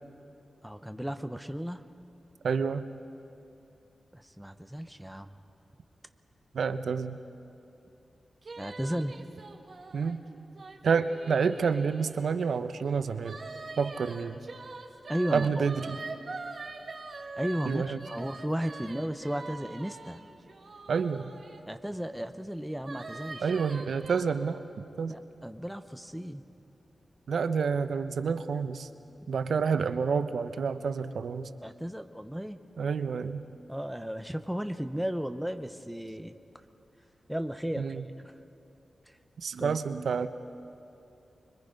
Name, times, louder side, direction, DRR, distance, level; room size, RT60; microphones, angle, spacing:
voice 1, 0.6-1.8 4.1-5.3 8.6-9.1 15.1-15.7 17.4-20.2 21.7-23.5 25.1-26.4 31.6-32.6 33.7-36.4 37.3-38.3 39.6-39.8, equal, 5° right, 8 dB, 0.6 m, -34 dB
voice 2, 2.4-2.8 6.5-7.2 9.9-10.2 10.8-13.4 13.8-14.4 15.3-15.9 17.6-18.0 20.9-21.3 23.4-25.2 27.3-28.9 29.3-31.5 32.8-33.4 37.8-38.0 39.4-40.3, right 5 dB, 80° right, 10 dB, 0.7 m, -29 dB
sound 1, 8.4-12.6 13.2-21.6 22.8-24.2, right 3 dB, 45° right, 1.4 m, -43 dB
25.5 x 22.5 x 5.2 m, 2.8 s
wide cardioid pair, 175°, 0 cm